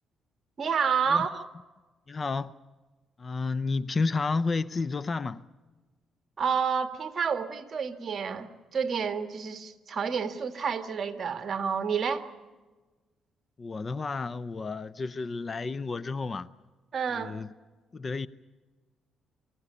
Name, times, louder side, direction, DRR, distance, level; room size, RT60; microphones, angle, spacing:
voice 1, 0.6-1.4 6.4-12.2 16.9-17.4, right 6 dB, 45° right, 1.8 m, -29 dB
voice 2, 2.1-2.5 3.2-5.4 13.6-16.5 17.1-17.5 17.9-18.3, left 4 dB, 35° left, 0.6 m, -31 dB
24.5 x 15.5 x 9.7 m
cardioid pair, 90°, 0 cm